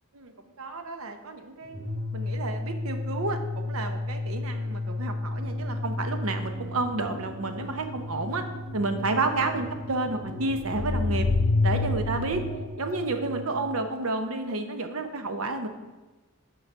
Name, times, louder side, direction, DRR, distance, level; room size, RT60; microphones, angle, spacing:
voice 1, 0.1-1.8 2.1-8.5 8.7-11.3 11.6-12.4 12.8-15.7, right 3 dB, 80° right, 7 dB, 0.8 m, -30 dB
sound 1, 1.6-13.5, left 2 dB, 45° right, 1.7 m, -35 dB
sound 2, 5.4-12.7, left 3 dB, 40° left, 0.4 m, -29 dB
5.9 x 5.0 x 6.6 m, 1.2 s
head